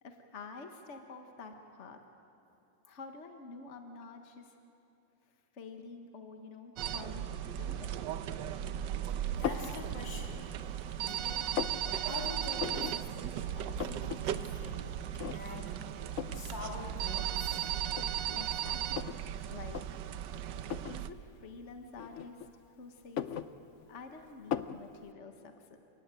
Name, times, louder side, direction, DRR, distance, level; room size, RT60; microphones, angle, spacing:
voice 1, 0.0-2.0 2.8-4.6 5.5-8.0 18.4-19.1 19.5-19.8 20.9-22.5 22.8-23.3 23.9-25.8, left 4 dB, 45° left, 5 dB, 1.6 m, -48 dB
sound 1, 6.8-21.1, right 10 dB, 85° right, 1.4 m, -36 dB
voice 2, 9.3-10.5 11.0-11.5 12.0-15.1 15.3-15.7 16.3-17.7, left 3 dB, 85° left, -1 dB, 4.0 m, -45 dB
sound 2, 9.4-9.8 10.3-10.9 11.2-11.8 12.6-13.0 13.3-13.4 13.6-14.2 14.5-14.6 15.2-15.7 16.2-16.4 17.3-17.4 17.9-19.2 19.6-19.9 20.6-21.0 22.0-22.6 23.0-24.0 24.5-24.8, left 9 dB, 60° left, 0.8 m, -37 dB
30.0 x 17.0 x 9.1 m, 2.9 s
omnidirectional pair, 1.9 m